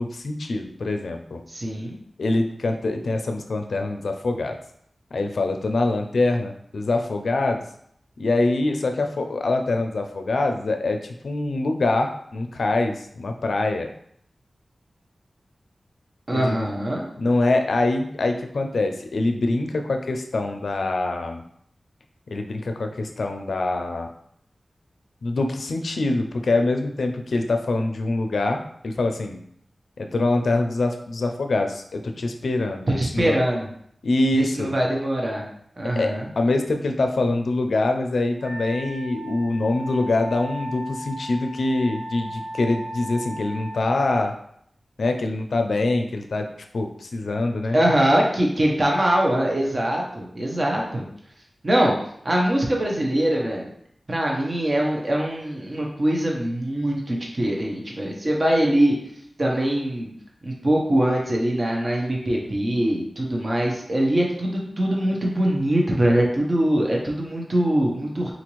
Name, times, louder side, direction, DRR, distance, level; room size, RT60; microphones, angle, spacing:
voice 1, 0.0-1.4 2.2-4.6 5.1-7.6 8.2-13.9 16.3-16.7 17.2-21.4 22.3-24.1 25.2-29.4 30.0-33.4 34.0-34.7 36.0-44.3 45.0-46.4 46.7-47.8, left 2 dB, 85° left, 5 dB, 0.4 m, -24 dB
voice 2, 1.5-1.9 16.3-17.1 33.0-33.6 34.3-35.4 35.8-36.3 47.7-51.0 51.6-51.9 52.2-53.7 54.1-58.9 59.4-60.1 60.4-68.3, right 1 dB, 40° right, -1 dB, 0.7 m, -22 dB
Wind instrument woodwind instrument, 38.4-43.9, equal, 65° right, 1.1 m, -36 dB
3.8 x 2.5 x 3.0 m, 0.68 s
wide cardioid pair, 70°, 0 cm